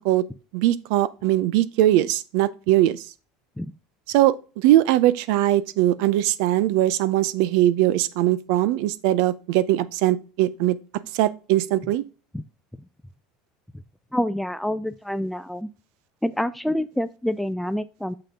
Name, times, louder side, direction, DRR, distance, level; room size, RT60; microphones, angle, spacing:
voice 1, 0.5-3.0 4.1-10.7 11.1-12.0, right 14 dB, 70° right, 0.6 m, -21 dB
voice 2, 14.1-15.7 16.2-18.1, left 1 dB, 5° left, 0.4 m, -27 dB
6.9 x 5.7 x 3.7 m
supercardioid pair, 135°, 3 cm